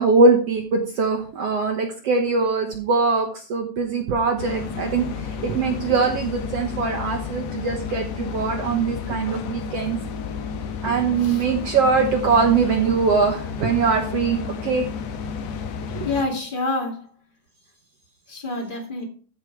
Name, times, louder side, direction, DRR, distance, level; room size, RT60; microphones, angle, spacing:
voice 1, 0.0-5.0 5.4-10.0 10.8-14.8 15.9-16.0, right 4 dB, 65° right, 2 dB, 1.6 m, -22 dB
sound 1, 4.4-16.2, left 6 dB, 70° left, 1.7 m, -32 dB
voice 2, 16.0-17.1 18.3-19.0, left 2 dB, 20° left, 1 dB, 1.7 m, -27 dB
14.5 x 5.2 x 4.6 m, 0.40 s
omnidirectional pair, 4.2 m